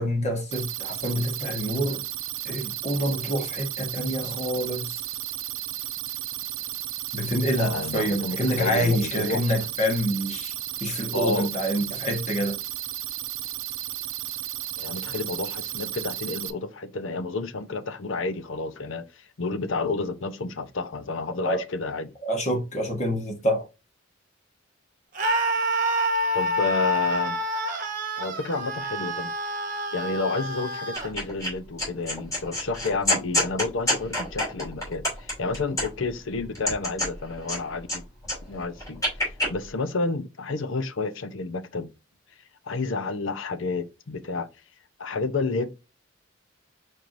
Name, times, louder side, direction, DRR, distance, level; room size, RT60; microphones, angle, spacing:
voice 1, 0.0-2.0 2.4-5.0 7.1-10.5 10.8-12.6 21.4-21.6 22.2-23.6, equal, 35° left, 1.3 m, -27 dB
sound 1, 0.5-16.5, right 14 dB, 90° right, 0.6 m, -34 dB
voice 2, 7.6-9.4 11.1-11.5 14.8-22.1 26.3-27.4 28.2-29.3 29.9-38.0 38.5-41.9 42.6-44.5 45.0-45.7, left 3 dB, 75° left, 0.7 m, -30 dB
Screaming, 25.2-31.1, equal, 45° right, 1.1 m, -27 dB
sound 2, 30.9-31.5 31.8-36.1 36.5-38.0 38.2-39.5, left 1 dB, 15° left, 3.0 m, -27 dB
4.6 x 4.4 x 2.6 m
head